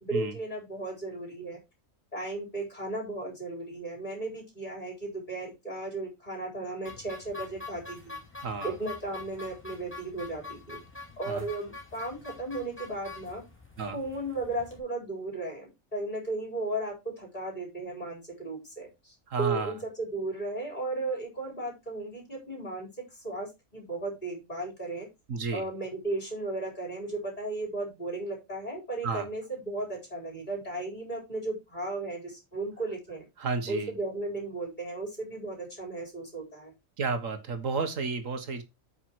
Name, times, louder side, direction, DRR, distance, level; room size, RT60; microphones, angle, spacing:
voice 1, 0.1-1.6 2.1-8.2 8.6-10.8 11.2-13.4 13.9-25.1 25.5-33.2 33.7-36.7, right 2 dB, 35° left, 4.8 m, -35 dB
sound 1, 6.8-14.8, left 4 dB, 10° left, 2.7 m, -45 dB
voice 2, 8.4-8.7 11.3-11.4 13.8-14.0 19.3-19.7 25.3-25.6 29.0-29.3 33.4-33.9 37.0-38.6, right 4 dB, 70° right, 1.7 m, -31 dB
8.9 x 5.7 x 4.7 m
omnidirectional pair, 1.4 m